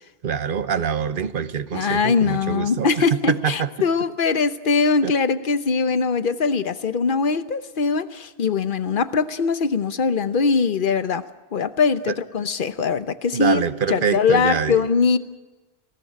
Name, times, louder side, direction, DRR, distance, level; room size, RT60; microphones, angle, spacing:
voice 1, 0.2-3.7 5.0-5.1 12.1-12.2 13.3-14.8, right 7 dB, 60° right, 14 dB, 1.0 m, -25 dB
voice 2, 1.7-11.2 11.5-13.6 13.9-15.2, left 5 dB, 55° left, 12 dB, 1.0 m, -21 dB
20.5 x 17.5 x 10.0 m, 1.2 s
omnidirectional pair, 1.1 m